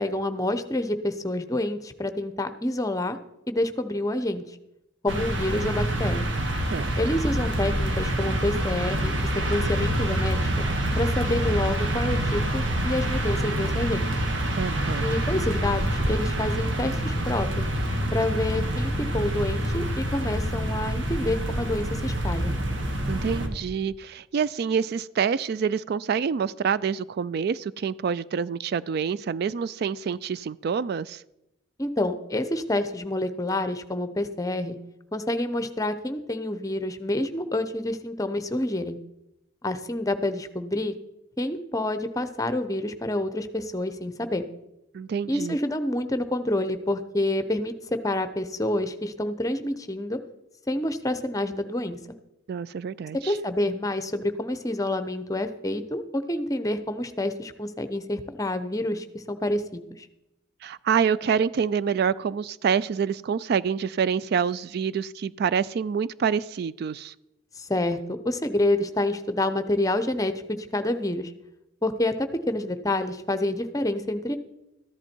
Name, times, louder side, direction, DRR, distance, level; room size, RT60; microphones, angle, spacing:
voice 1, 0.0-3.2 3.5-4.4 5.0-6.3 7.0-9.1 9.5-10.4 11.0-14.1 15.0-17.7 18.1-22.5 31.8-34.8 35.1-39.0 39.6-40.9 41.4-44.4 45.3-47.7 48.0-50.2 50.7-52.0 53.3-60.1 67.6-71.3 71.8-74.4, left 1 dB, 20° left, 10 dB, 0.8 m, -28 dB
sound 1, 5.1-23.5, right 1 dB, 70° right, 1.8 m, -26 dB
voice 2, 14.6-15.2 23.1-31.2 44.9-45.6 52.5-53.4 60.6-67.1, right 6 dB, 55° right, 18 dB, 0.3 m, -27 dB
14.0 x 10.5 x 4.5 m, 0.90 s
head